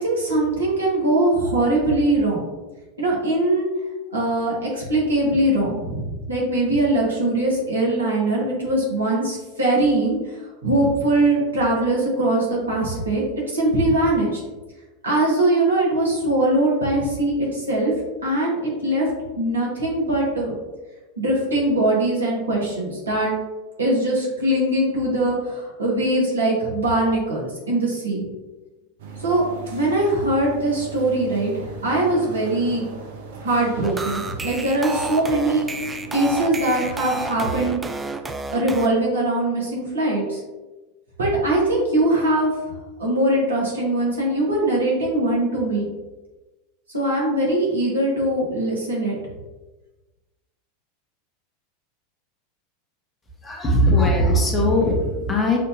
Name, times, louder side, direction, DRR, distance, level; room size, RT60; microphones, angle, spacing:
voice 1, 0.0-2.4 3.0-3.7 4.1-10.4 10.6-14.4 15.0-17.9 18.2-19.1 19.4-20.5 21.2-23.3 23.8-28.2 29.2-29.5 29.7-32.8 33.4-35.7 36.1-37.8 38.5-40.4 41.2-42.5 43.0-45.9 46.9-49.2, right 1 dB, 85° right, -4 dB, 1.4 m, -21 dB
sound 1, 29.0-37.7, right 3 dB, 65° right, 0.7 m, -38 dB
sound 2, 33.8-38.9, right 3 dB, 15° right, 0.4 m, -31 dB
voice 2, 53.4-55.6, left 1 dB, 25° left, -1 dB, 1.2 m, -19 dB
6.5 x 2.7 x 2.7 m, 1.1 s
figure-of-eight pair, 85°, 0 cm